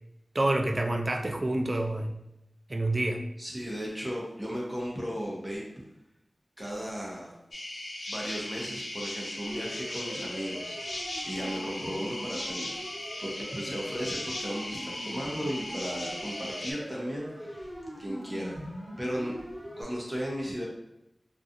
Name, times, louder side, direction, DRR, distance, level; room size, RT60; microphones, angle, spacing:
voice 1, 0.3-2.2 2.7-3.2, right 1 dB, 40° right, 4 dB, 0.3 m, -27 dB
voice 2, 3.4-5.6 6.6-7.3 8.1-12.9 13.2-17.7 18.0-18.7 19.0-19.4 19.8-20.6, equal, 10° right, -4 dB, 0.8 m, -36 dB
sound 1, 7.5-16.7, left 1 dB, 75° left, 0.5 m, -38 dB
Siren, 9.5-19.8, equal, 30° left, 1.3 m, -42 dB
2.6 x 2.3 x 2.5 m, 0.85 s
wide cardioid pair, 80°, 0 cm